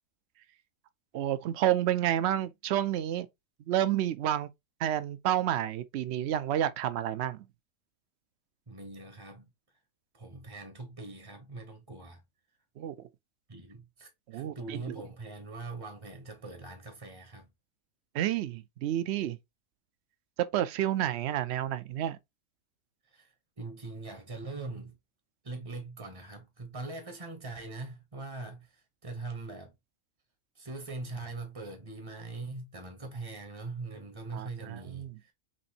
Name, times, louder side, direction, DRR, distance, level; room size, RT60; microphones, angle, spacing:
voice 1, 1.1-3.3 3.7-4.5 4.8-7.4 12.8-13.0 14.3-14.8 18.1-19.4 20.5-22.2 34.3-35.1, right 12 dB, 65° right, 0.7 m, -30 dB
voice 2, 8.7-9.5 10.1-12.2 13.5-17.5 23.0-25.0 25.4-29.7 30.5-35.3, right 3 dB, 25° right, 0.7 m, -42 dB
5.9 x 2.6 x 2.8 m
omnidirectional pair, 1.5 m